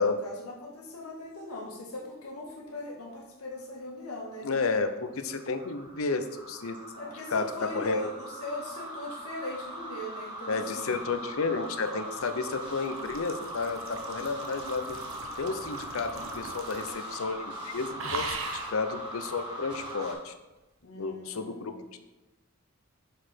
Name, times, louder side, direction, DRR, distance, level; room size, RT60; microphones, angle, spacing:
voice 1, 0.0-4.5 7.0-11.0 11.9-12.0 20.8-21.8, left 2 dB, 85° left, -1 dB, 1.7 m, -39 dB
sound 1, 4.2-20.1, right 1 dB, 20° right, 2.0 m, -40 dB
voice 2, 4.4-6.8 7.0-7.4 7.7-8.1 10.5-15.0 15.4-18.4 18.7-20.3 21.0-21.7, left 4 dB, 65° left, 9 dB, 0.6 m, -32 dB
sound 2, 11.4-17.1 17.4-17.6 18.0-18.8 19.7-19.9, right 3 dB, 65° right, 0.8 m, -40 dB
6.6 x 4.8 x 4.4 m, 1.0 s
head